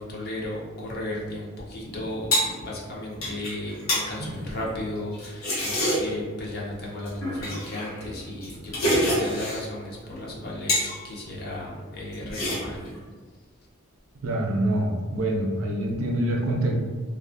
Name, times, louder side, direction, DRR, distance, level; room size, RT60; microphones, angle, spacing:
voice 1, 0.0-12.8, left 1 dB, 50° left, -3 dB, 0.6 m, -35 dB
sound 1, 1.8-6.3 7.0-9.7 10.1-11.0 11.3-11.8 12.1-13.0, equal, 80° left, 0.9 m, -28 dB
voice 2, 14.2-16.7, right 1 dB, 70° right, 1 dB, 0.4 m, -25 dB
2.3 x 2.1 x 2.5 m, 1.4 s
head